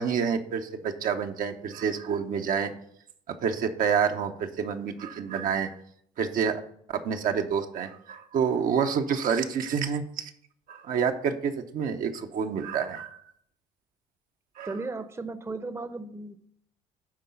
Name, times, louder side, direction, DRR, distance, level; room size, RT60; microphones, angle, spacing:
voice 1, 0.0-2.7 3.4-5.7 6.2-6.6 6.9-10.3 10.7-13.2 14.6-14.7, right 7 dB, 60° right, 5 dB, 0.9 m, -28 dB
voice 2, 14.6-16.4, right 3 dB, 15° right, 11 dB, 0.8 m, -35 dB
9.7 x 3.8 x 6.9 m, 0.67 s
supercardioid pair, 70°, 16 cm